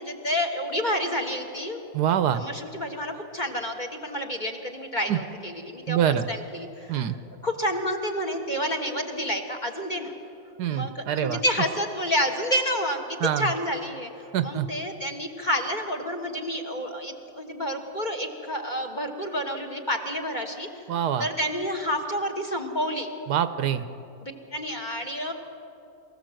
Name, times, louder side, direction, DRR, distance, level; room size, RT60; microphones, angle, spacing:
voice 1, 0.0-1.8 2.3-7.1 7.4-10.1 10.7-14.1 14.4-20.7 21.2-23.1 24.2-25.3, equal, 30° left, 3 dB, 1.3 m, -29 dB
voice 2, 1.9-2.4 5.1-5.2 5.9-6.3 6.9-7.1 10.6-11.4 13.2-13.5 14.3-14.7 20.9-21.3 23.3-23.8, right 9 dB, 70° right, 11 dB, 1.2 m, -25 dB
23.5 x 15.0 x 7.7 m, 2.9 s
omnidirectional pair, 1.9 m